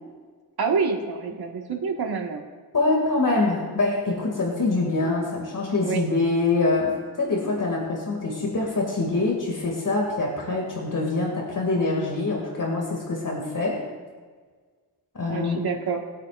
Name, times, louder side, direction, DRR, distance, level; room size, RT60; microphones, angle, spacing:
voice 1, 0.6-2.4 5.8-6.0 15.3-16.0, right 5 dB, 65° right, 2 dB, 1.8 m, -27 dB
voice 2, 2.7-13.8 15.1-15.7, left 3 dB, 50° left, -1 dB, 2.6 m, -25 dB
21.0 x 8.4 x 2.6 m, 1.5 s
cardioid pair, 70°, 41 cm